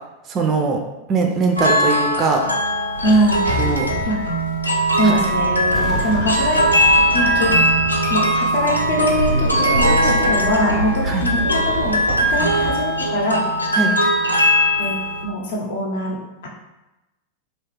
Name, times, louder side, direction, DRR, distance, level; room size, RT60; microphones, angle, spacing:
voice 1, 0.3-0.8 1.1-2.4 3.6-3.9 5.0-5.2 11.0-11.3 13.7-14.0, right 4 dB, 30° right, 3 dB, 0.3 m, -20 dB
sound 1, 1.6-15.2, equal, 85° left, 0.3 m, -20 dB
Sliding door, 2.9-13.1, right 1 dB, 90° right, 0.6 m, -27 dB
voice 2, 3.0-3.5 4.1-4.2 4.9-6.7 7.1-7.5 8.1-13.4 14.8-14.9 15.2-16.2 16.4-16.5, equal, 60° left, -2 dB, 0.7 m, -22 dB
sound 2, 5.7-8.6 8.9-9.0, equal, 20° left, 0.8 m, -33 dB
3.0 x 2.3 x 3.0 m, 1.0 s
figure-of-eight pair, 90°, 0 cm